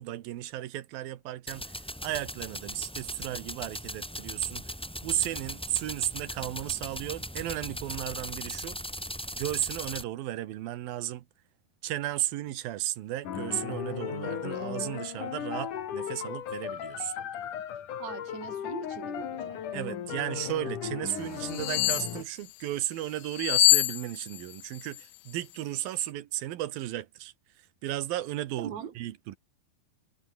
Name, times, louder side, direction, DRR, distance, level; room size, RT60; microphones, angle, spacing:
voice 1, 0.0-4.7 5.0-8.8 9.4-11.3 11.8-17.2 19.7-29.4, right 14 dB, 75° right, 2.9 m, -34 dB
sound 1, 1.5-10.0, equal, ahead, 2.9 m, -39 dB
sound 2, 13.2-22.2, left 9 dB, 60° left, 3.4 m, -36 dB
voice 2, 18.0-19.6 28.6-28.9, right 9 dB, 55° right, 2.9 m, -41 dB
sound 3, 21.5-22.2 23.3-24.5 24.8-25.0, left 22 dB, 80° left, 2.1 m, -24 dB
omnidirectional pair, 4.4 m